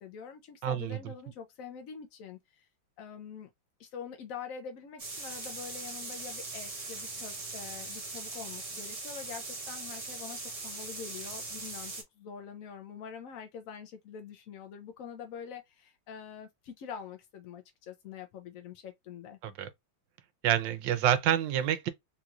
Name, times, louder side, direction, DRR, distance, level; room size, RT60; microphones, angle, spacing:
voice 1, 0.0-2.7 3.0-3.5 3.8-19.4, left 7 dB, 70° left, 0.8 m, -45 dB
voice 2, 0.6-1.0 19.4-19.7 20.4-21.9, right 10 dB, 75° right, 1.3 m, -27 dB
sound 1, 5.0-12.0, right 3 dB, 35° right, 0.6 m, -40 dB
3.7 x 3.0 x 2.4 m
omnidirectional pair, 2.1 m